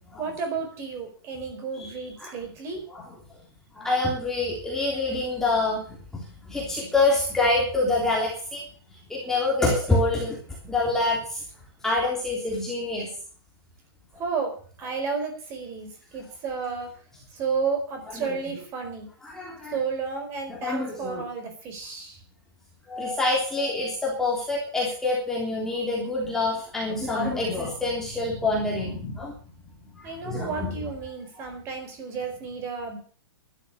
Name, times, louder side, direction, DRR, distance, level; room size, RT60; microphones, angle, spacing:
voice 1, 0.2-2.8 14.2-16.9 17.3-19.1 19.7-22.2 30.0-33.0, right 5 dB, 20° right, 5 dB, 4.4 m, -32 dB
voice 2, 3.7-8.6 8.9-10.4 10.7-11.4 11.8-13.1 18.1-18.3 19.2-19.8 20.5-21.2 22.9-29.3 29.9-30.8, left 2 dB, 5° left, -3 dB, 3.2 m, -26 dB
12.5 x 12.5 x 6.7 m, 0.44 s
hypercardioid pair, 170°, 13 cm